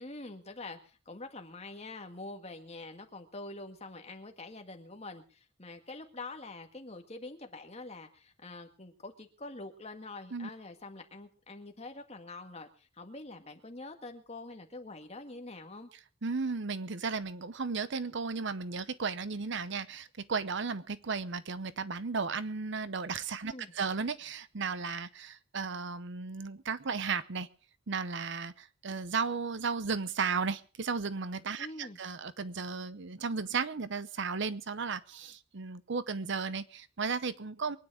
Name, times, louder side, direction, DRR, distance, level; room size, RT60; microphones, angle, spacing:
voice 1, 0.0-15.9 23.5-23.7 31.6-32.0, left 2 dB, 30° left, 1.9 m, -45 dB
voice 2, 16.2-27.5 27.9-37.8, right 5 dB, 60° right, 0.8 m, -35 dB
23.5 x 9.6 x 4.8 m
head